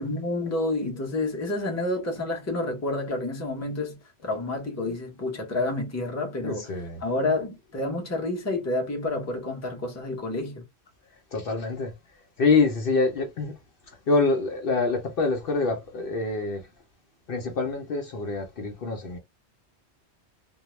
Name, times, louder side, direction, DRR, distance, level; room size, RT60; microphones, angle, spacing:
voice 1, 0.0-6.7 7.0-10.6, left 2 dB, 15° left, 0.7 m, -29 dB
voice 2, 6.4-7.0 11.3-11.9 12.4-13.5 13.9-16.7 17.3-19.2, left 3 dB, 60° left, 0.7 m, -26 dB
2.2 x 2.0 x 2.9 m
omnidirectional pair, 1.1 m